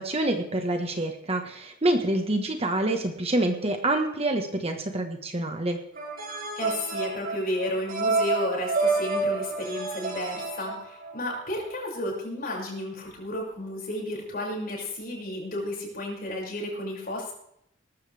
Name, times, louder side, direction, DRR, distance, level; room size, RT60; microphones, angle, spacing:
voice 1, 0.0-5.8, right 1 dB, 30° right, 4 dB, 1.4 m, -27 dB
sound 1, 5.9-11.3, right 3 dB, 50° right, 5.3 m, -29 dB
voice 2, 6.6-17.3, left 1 dB, 50° left, -2 dB, 6.2 m, -32 dB
20.0 x 14.0 x 3.5 m, 0.74 s
head